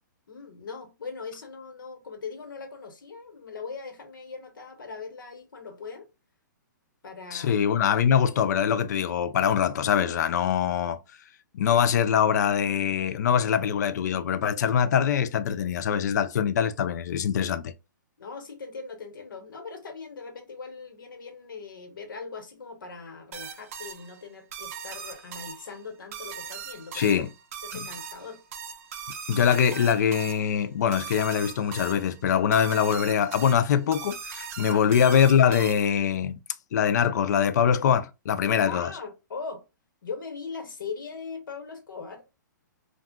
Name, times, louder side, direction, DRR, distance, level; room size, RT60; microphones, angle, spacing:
voice 1, 0.3-6.1 7.0-7.5 18.2-27.2 27.6-28.4 34.7-34.8 38.7-39.6 40.0-42.2, left 5 dB, 90° left, 1.0 m, -40 dB
voice 2, 7.3-11.0 11.5-17.7 26.9-27.3 27.7-27.9 29.3-36.4 36.7-38.9, left 8 dB, 60° left, 0.4 m, -23 dB
sound 1, 23.3-36.1, right 7 dB, 45° right, 0.5 m, -40 dB
2.3 x 2.2 x 3.5 m
hypercardioid pair, 155°, 11 cm